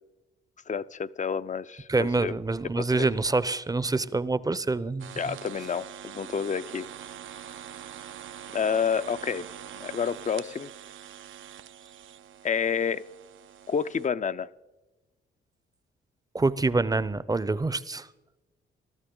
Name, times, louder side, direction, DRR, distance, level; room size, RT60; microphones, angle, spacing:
voice 1, 0.7-2.3 2.8-3.1 5.2-6.9 8.5-9.5 9.8-10.7 12.4-13.0 13.7-14.5, left 6 dB, 35° left, 14 dB, 0.5 m, -29 dB
voice 2, 1.9-5.4 16.3-18.1, right 3 dB, 15° right, 17 dB, 0.6 m, -26 dB
sound 1, 5.0-14.1, right 10 dB, 70° right, 0.6 m, -44 dB
20.0 x 12.5 x 3.8 m, 1.1 s
supercardioid pair, 60°, 21 cm